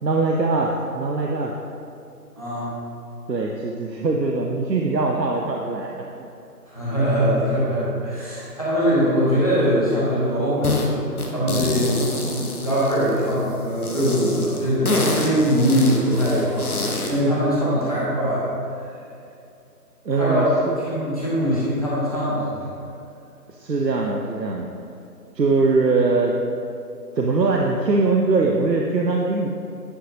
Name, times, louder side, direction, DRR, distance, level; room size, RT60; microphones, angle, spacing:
voice 1, 0.0-1.5 3.3-5.9 6.1-6.3 20.0-20.8 23.5-24.7 25.4-26.4 27.2-29.5, right 3 dB, 90° right, 0 dB, 0.8 m, -22 dB
voice 2, 2.4-2.7 6.7-11.0 11.3-18.5 20.1-20.5 20.8-22.7, equal, 20° left, -10 dB, 1.4 m, -22 dB
sound 1, 10.6-10.9 11.2-13.3 13.8-17.2, left 2 dB, 65° left, 1.0 m, -26 dB
9.6 x 5.7 x 2.7 m, 2.6 s
figure-of-eight pair, 170°, 48 cm